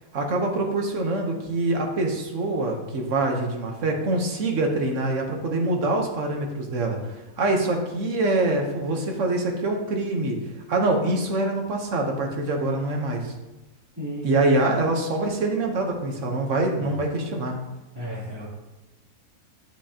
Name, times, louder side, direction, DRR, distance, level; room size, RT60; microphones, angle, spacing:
voice 1, 0.1-10.4 10.7-13.3 14.2-17.6, right 2 dB, 55° right, 2 dB, 1.3 m, -25 dB
voice 2, 14.0-14.3 16.8-16.9 17.9-18.5, equal, 15° right, -9 dB, 2.9 m, -33 dB
9.8 x 5.9 x 2.8 m, 1.0 s
omnidirectional pair, 1.6 m